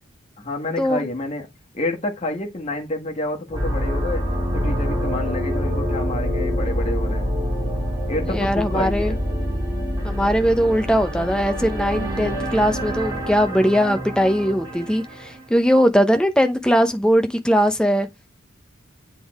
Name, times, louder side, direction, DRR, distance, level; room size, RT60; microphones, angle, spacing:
voice 1, 0.4-1.5 1.7-4.2 4.5-7.3 8.1-9.2, left 2 dB, 30° left, 1.5 m, -28 dB
sound 1, 3.5-15.4, equal, 20° right, 2.9 m, -26 dB
voice 2, 8.3-9.1 10.0-18.1, equal, 5° left, 0.7 m, -20 dB
8.4 x 3.6 x 3.6 m
head